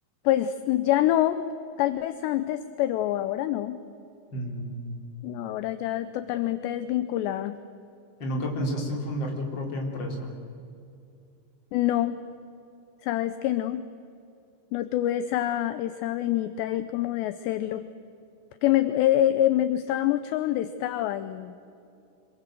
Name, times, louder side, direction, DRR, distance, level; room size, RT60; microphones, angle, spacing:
voice 1, 0.2-1.5 1.8-3.8 5.2-7.6 11.7-12.2 13.0-13.9 14.7-17.9 18.6-21.5, left 13 dB, 80° left, 11 dB, 2.6 m, -26 dB
voice 2, 4.3-5.0 8.2-10.3, equal, 25° left, 1 dB, 3.5 m, -31 dB
26.0 x 23.5 x 7.6 m, 2.6 s
omnidirectional pair, 5.8 m